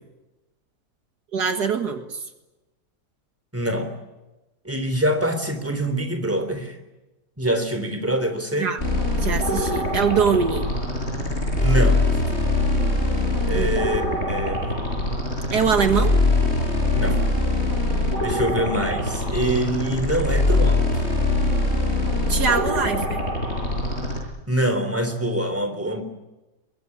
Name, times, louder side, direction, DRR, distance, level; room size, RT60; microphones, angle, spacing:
voice 1, 1.3-2.3 8.6-8.8 9.2-10.7 13.5-13.7 15.5-16.1 22.3-23.2, right 6 dB, 70° right, 7 dB, 2.2 m, -23 dB
voice 2, 3.5-3.9 4.6-6.8 7.4-8.7 11.6-12.2 13.5-14.0 14.3-14.7 16.9-17.2 18.2-21.0 24.5-26.0, right 1 dB, 10° right, 8 dB, 3.5 m, -25 dB
sound 1, 8.8-24.2, left 2 dB, 40° left, 7.6 m, -23 dB
23.0 x 23.0 x 9.8 m, 1.0 s
omnidirectional pair, 1.8 m